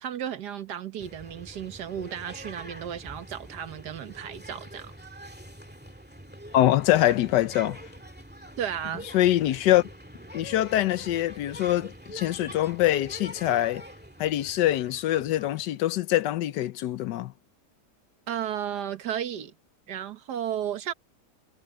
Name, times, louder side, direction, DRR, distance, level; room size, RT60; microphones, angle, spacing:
voice 1, 0.0-4.9 8.6-9.1 18.3-19.5 19.9-20.9, right 9 dB, 75° right, 1.7 m, -34 dB
sound 1, 1.0-15.9, equal, 5° right, 2.0 m, -45 dB
voice 2, 6.5-7.8 9.1-9.8 10.3-13.8 14.2-17.3, left 14 dB, 85° left, 1.3 m, -24 dB
omnidirectional pair, 1.8 m